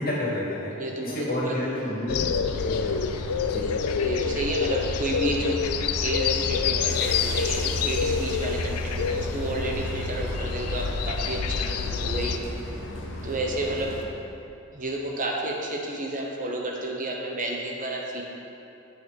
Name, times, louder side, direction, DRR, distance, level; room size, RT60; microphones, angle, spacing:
voice 1, 0.0-0.7 1.0-3.1 3.5-3.7, left 1 dB, 40° left, -5 dB, 2.1 m, -30 dB
voice 2, 0.8-1.5 4.0-5.6 6.0-12.7 13.2-14.0 14.7-18.2, right 1 dB, 35° right, 0 dB, 0.8 m, -31 dB
sound 1, 2.1-12.4, left 6 dB, 80° left, 0.4 m, -28 dB
sound 2, 2.4-14.0, left 1 dB, 55° left, 1.0 m, -35 dB
8.1 x 6.0 x 5.3 m, 2.8 s
head